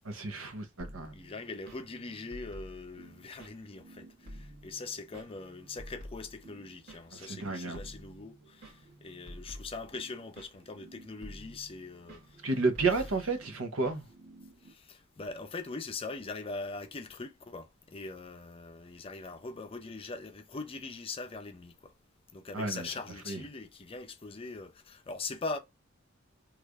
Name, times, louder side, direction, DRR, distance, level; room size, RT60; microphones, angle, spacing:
voice 1, 0.0-1.1 7.1-7.8 12.4-14.0 22.5-22.9 23.3-23.4, right 3 dB, 80° right, 0.8 m, -31 dB
sound 1, 0.8-14.7, equal, 55° right, 1.5 m, -50 dB
voice 2, 1.1-12.5 12.9-13.1 14.6-21.9 22.3-25.6, left 3 dB, 25° left, 0.5 m, -42 dB
3.2 x 2.5 x 3.3 m
head